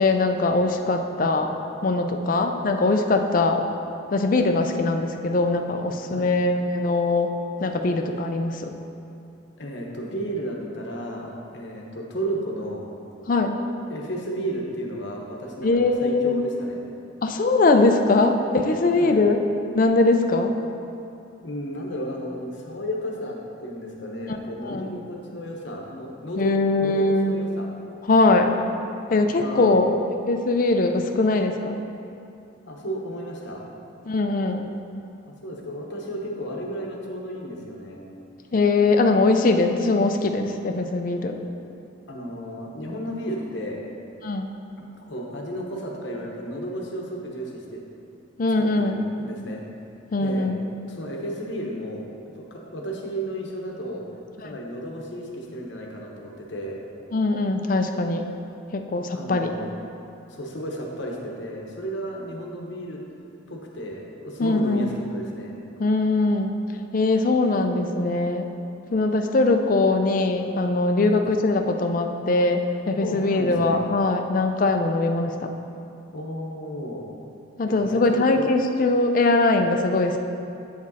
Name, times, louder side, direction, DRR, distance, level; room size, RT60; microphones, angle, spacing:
voice 1, 0.0-1.5 1.8-3.6 4.1-7.3 7.6-8.7 13.3-13.6 15.6-16.4 17.2-19.4 19.7-20.6 24.6-25.0 26.4-27.3 28.1-28.6 29.1-29.9 30.3-31.8 34.1-34.7 38.5-41.4 44.2-44.5 48.4-49.0 50.1-50.6 54.4-54.5 57.1-58.3 58.7-59.5 64.4-64.9 65.8-66.6 66.9-68.5 68.9-75.5 77.6-80.2, left 2 dB, 45° left, 5 dB, 0.4 m, -21 dB
voice 2, 9.6-12.9 13.9-16.8 19.0-19.2 21.4-27.7 29.2-29.7 32.7-33.7 35.3-38.0 42.1-43.8 45.0-47.8 48.8-49.6 50.2-50.5 50.9-52.1 52.4-54.0 54.4-56.8 59.1-59.7 60.3-63.0 63.5-65.6 71.0-71.2 73.0-73.8 76.1-77.1 77.7-78.0 78.4-78.5, equal, 65° left, 0 dB, 1.0 m, -33 dB
8.1 x 5.2 x 4.1 m, 2.7 s
head